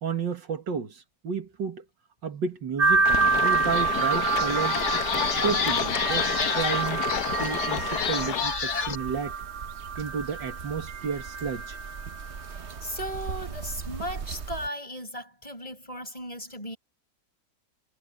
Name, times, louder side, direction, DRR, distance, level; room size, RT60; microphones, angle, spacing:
voice 1, 0.0-1.8 2.2-4.8 5.3-7.1 7.4-9.3 10.0-11.8, right 6 dB, 90° right, 2.5 m, -32 dB
sound 1, 2.8-14.7, right 5 dB, 45° right, 1.1 m, -29 dB
sound 2, 3.0-8.4, left 10 dB, 70° left, 1.4 m, -32 dB
sound 3, 3.1-3.2 3.6-8.9, left 7 dB, 45° left, 1.2 m, -30 dB
voice 2, 12.8-16.8, equal, 20° left, 5.4 m, -36 dB
omnidirectional pair, 1.9 m